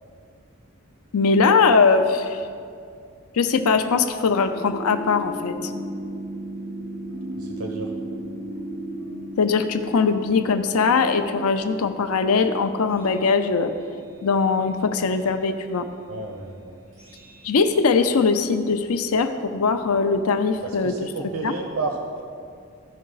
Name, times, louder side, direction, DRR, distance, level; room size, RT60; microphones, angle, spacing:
voice 1, 1.1-2.4 3.3-5.7 9.4-13.7 14.2-15.9 17.4-20.9 21.4-21.5, left 4 dB, 85° left, 8 dB, 0.5 m, -21 dB
sound 1, 4.5-18.1, right 1 dB, 60° right, 2.6 m, -37 dB
voice 2, 7.4-7.9 16.1-16.8 20.6-22.2, right 2 dB, 90° right, 2 dB, 0.9 m, -31 dB
15.0 x 5.5 x 3.9 m, 2.3 s
head